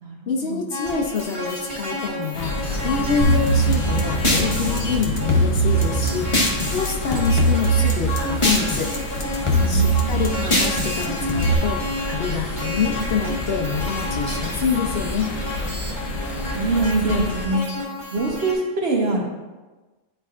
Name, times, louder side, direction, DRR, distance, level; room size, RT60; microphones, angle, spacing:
voice 1, 0.3-8.9 9.4-15.3, left 5 dB, 60° left, 1 dB, 0.8 m, -26 dB
sound 1, 0.7-18.5, left 1 dB, 25° right, 1.8 m, -31 dB
sound 2, 2.3-17.5, left 2 dB, 80° left, 1.2 m, -29 dB
sound 3, 3.2-6.9 7.1-9.0 9.2-11.5, right 1 dB, 30° left, 0.8 m, -21 dB
voice 2, 9.6-10.1 16.5-17.6 18.1-19.2, right 2 dB, 55° right, 0 dB, 1.2 m, -23 dB
10.0 x 4.4 x 2.4 m, 1.2 s
omnidirectional pair, 1.3 m